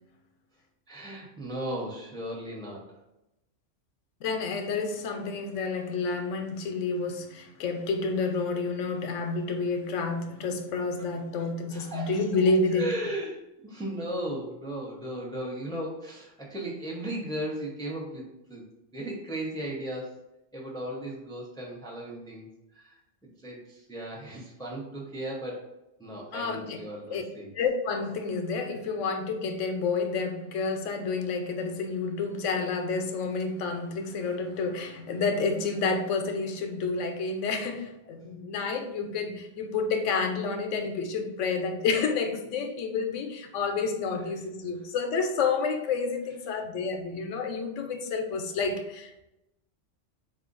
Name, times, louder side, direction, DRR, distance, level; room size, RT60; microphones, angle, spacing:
voice 1, 0.9-2.9 11.7-12.2 12.7-18.2 18.5-18.6 18.9-20.1 20.5-22.5 22.7-23.0 23.4-25.7 26.0-27.5, right 1 dB, 5° left, 0.6 m, -36 dB
voice 2, 4.2-12.9 26.3-26.8 27.1-27.2 27.5-49.2, left 4 dB, 85° left, 1.0 m, -29 dB
4.2 x 2.5 x 3.8 m
omnidirectional pair, 1.3 m